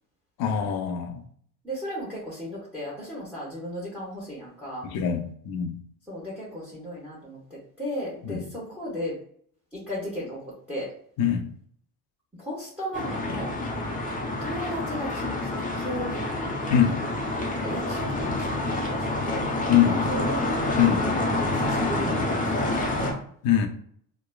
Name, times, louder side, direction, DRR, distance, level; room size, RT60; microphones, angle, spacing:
voice 1, 0.4-1.2 4.8-5.8 8.2-8.4 11.2-11.5 16.7-17.0 19.7-20.0 20.8-21.1 23.4-23.7, left 9 dB, 60° left, 6 dB, 0.6 m, -23 dB
voice 2, 1.6-4.9 6.1-9.1 9.9-10.9 12.4-13.5 14.4-15.5 15.7-16.2 17.5-20.5 21.0-23.1, equal, 5° right, -7 dB, 1.2 m, -35 dB
sound 1, 12.9-23.1, left 2 dB, 20° left, 0.7 m, -28 dB
2.9 x 2.1 x 2.2 m, 0.62 s
supercardioid pair, 75°, 42 cm